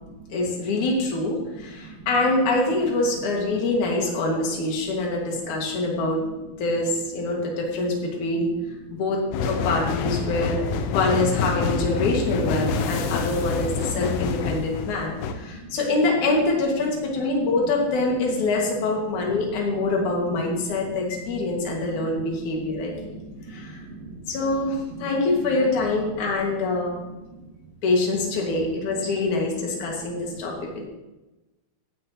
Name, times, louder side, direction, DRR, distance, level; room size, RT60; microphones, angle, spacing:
voice 1, 0.3-6.3 6.6-8.5 8.9-10.6 10.8-23.2 23.5-23.8 24.3-27.0 27.8-30.7, left 2 dB, 45° left, -1 dB, 3.0 m, -25 dB
sound 1, 9.3-15.3, left 5 dB, 85° left, 2.3 m, -27 dB
voice 2, 23.0-24.2 25.0-25.1, right 2 dB, 45° right, -4 dB, 2.5 m, -40 dB
15.5 x 12.0 x 3.2 m, 1.1 s
omnidirectional pair, 5.9 m